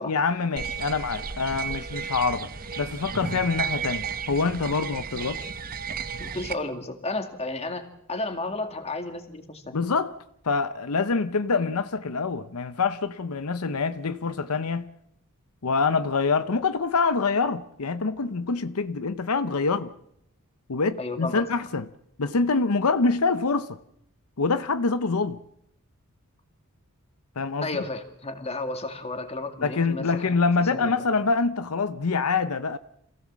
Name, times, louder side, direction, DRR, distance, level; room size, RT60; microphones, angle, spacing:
voice 1, 0.0-2.5 2.8-5.5 9.7-10.2 10.4-14.9 15.6-19.9 20.7-21.8 22.2-23.8 24.4-25.4 27.4-27.8 29.6-32.8, left 4 dB, 85° left, 0.8 m, -25 dB
sound 1, 0.6-6.5, right 6 dB, 40° right, 0.9 m, -33 dB
voice 2, 6.2-9.8 21.0-21.4 27.6-30.3 30.6-30.9, left 2 dB, 30° left, 2.2 m, -32 dB
27.0 x 16.5 x 7.4 m
head